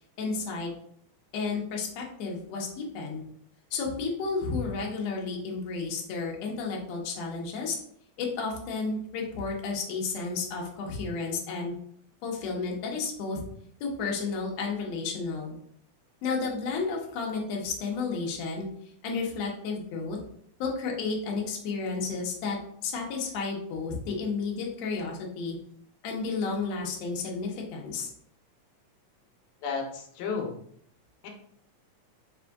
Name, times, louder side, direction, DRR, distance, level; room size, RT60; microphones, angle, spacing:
voice 1, 0.2-0.7 1.3-3.2 3.7-7.8 8.2-11.7 12.2-13.4 13.8-15.6 16.2-18.7 19.0-20.2 20.6-22.6 22.8-25.6 26.0-28.1, left 4 dB, 70° left, -1 dB, 1.8 m, -32 dB
voice 2, 29.6-30.5 31.2-31.3, left 5 dB, 90° left, 2 dB, 2.2 m, -32 dB
5.1 x 2.4 x 3.5 m, 0.65 s
omnidirectional pair, 3.6 m